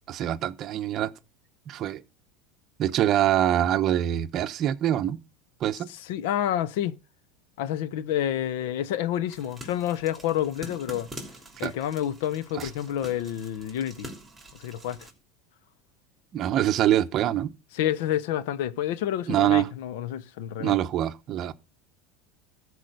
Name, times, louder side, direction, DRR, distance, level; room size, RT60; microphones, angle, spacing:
voice 1, 0.1-1.1 1.7-2.0 2.8-5.2 5.6-5.9 11.6-11.7 12.5-12.7 16.3-17.5 19.3-19.7 20.6-21.5, right 12 dB, 40° right, 0.8 m, -24 dB
voice 2, 5.9-7.0 7.6-11.1 11.6-14.1 14.6-15.1 17.7-20.8, left 11 dB, 75° left, 0.7 m, -29 dB
sound 1, 9.3-15.1, right 1 dB, 5° right, 3.3 m, -45 dB
13.5 x 4.9 x 6.6 m
supercardioid pair, 135°, 0 cm